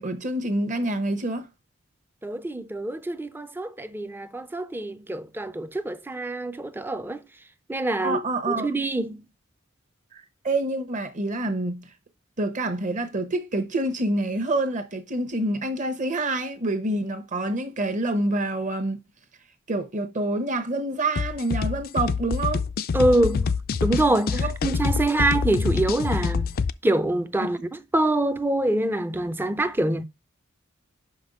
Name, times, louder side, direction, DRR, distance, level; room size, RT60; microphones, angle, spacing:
voice 1, 0.0-1.5 8.0-8.7 10.1-11.9 12.4-19.0 19.7-22.7 24.3-24.5 27.4-27.5, right 2 dB, 40° right, 1.0 m, -27 dB
voice 2, 2.2-7.2 7.7-8.2 8.5-9.2 22.9-23.5 23.8-26.5 26.8-30.0, right 1 dB, 10° right, 0.5 m, -25 dB
sound 1, 21.2-26.7, left 5 dB, 45° left, 0.4 m, -26 dB
5.5 x 5.3 x 5.3 m
head